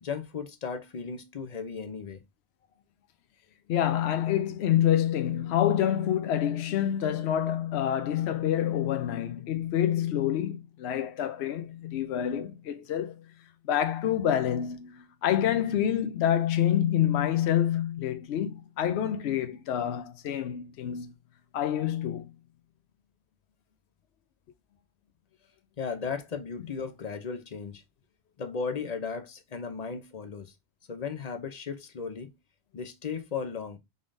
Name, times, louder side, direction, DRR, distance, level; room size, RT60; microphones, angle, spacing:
voice 1, 0.0-2.2 25.8-27.8 28.4-30.5 30.9-32.3 32.7-33.8, left 5 dB, 45° left, 0.7 m, -36 dB
voice 2, 3.7-13.2 13.6-21.1 21.5-22.3, left 10 dB, 75° left, 0.9 m, -27 dB
5.2 x 3.6 x 2.5 m
omnidirectional pair, 1.1 m